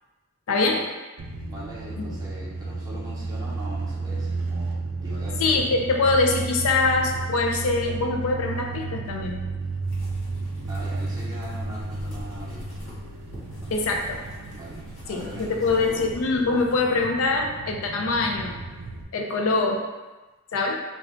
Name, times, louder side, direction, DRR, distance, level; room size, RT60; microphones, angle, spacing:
voice 1, 0.5-0.8 2.0-2.1 5.4-9.4 13.7-14.2 15.1-18.6 19.1-19.8 20.5-20.8, left 3 dB, 75° left, 1 dB, 0.4 m, -23 dB
sound 1, 1.2-19.0, right 3 dB, 75° right, 0.4 m, -33 dB
voice 2, 1.5-5.4 10.7-12.6 13.6-13.7 14.5-16.0, right 1 dB, 15° right, -6 dB, 0.6 m, -41 dB
sound 2, 9.8-16.8, equal, 60° left, 1.0 m, -45 dB
2.3 x 2.2 x 3.6 m, 1.2 s
head